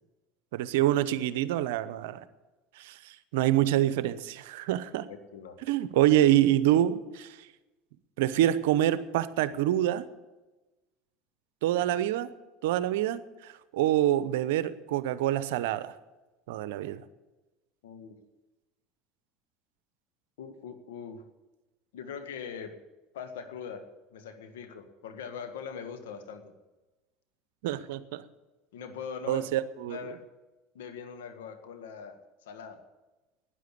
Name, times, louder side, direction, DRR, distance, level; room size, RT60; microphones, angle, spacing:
voice 1, 0.5-2.2 2.8-5.1 5.6-7.5 8.2-10.0 11.6-12.3 12.6-15.9 16.5-17.0 27.6-28.2 29.3-30.1, right 13 dB, 80° right, 15 dB, 0.8 m, -26 dB
voice 2, 17.8-18.1 20.4-21.2 21.9-22.8 23.1-26.5 28.7-29.5 29.9-30.2 30.8-32.8, left 6 dB, 85° left, 7 dB, 1.6 m, -41 dB
12.5 x 10.0 x 8.5 m, 1.1 s
hypercardioid pair, 90°, 0 cm